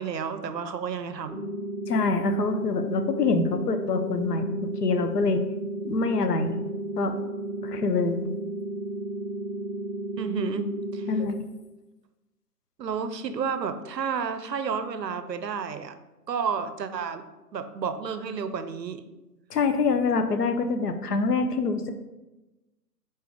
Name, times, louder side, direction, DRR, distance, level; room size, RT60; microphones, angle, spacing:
voice 1, 0.0-1.4 10.2-11.1 12.8-15.9 16.3-17.3 17.5-19.0, right 6 dB, 90° right, 11 dB, 0.5 m, -31 dB
sound 1, 1.3-11.3, right 2 dB, 5° right, 0.7 m, -33 dB
voice 2, 1.9-5.4 5.8-6.6 7.0-7.2 7.6-8.2 11.1-11.4 19.5-21.9, left 4 dB, 70° left, 7 dB, 0.6 m, -25 dB
4.1 x 3.4 x 3.6 m, 1.1 s
figure-of-eight pair, 135°, 49 cm